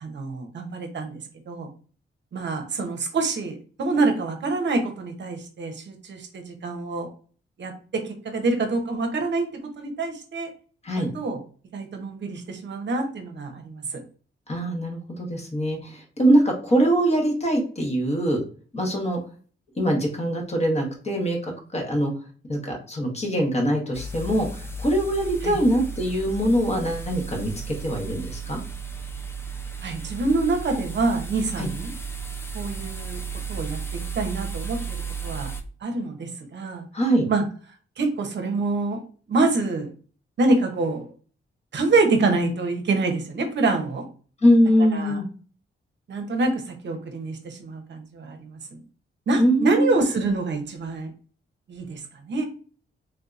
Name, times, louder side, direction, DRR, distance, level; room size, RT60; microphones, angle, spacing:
voice 1, 0.0-1.2 1.5-1.7 2.3-7.1 7.6-9.5 9.8-10.5 11.0-11.4 11.7-14.0 25.4-25.6 29.8-31.9 32.5-33.2 33.5-35.5 35.8-36.9 37.3-37.4 38.0-39.0 39.3-39.9 40.4-41.1 41.7-44.1 44.9-45.2 46.1-48.8 49.3-51.1 51.7-52.0 52.3-52.5, right 3 dB, 60° right, 5 dB, 0.7 m, -26 dB
voice 2, 14.5-18.4 18.7-19.2 19.8-22.1 22.5-28.6 31.6-31.7 36.9-37.3 44.4-45.3 49.4-49.9, equal, 30° left, 2 dB, 0.9 m, -23 dB
sound 1, 23.9-35.6, right 5 dB, 10° left, 0.4 m, -34 dB
3.4 x 2.7 x 2.3 m, 0.41 s
wide cardioid pair, 150°, 21 cm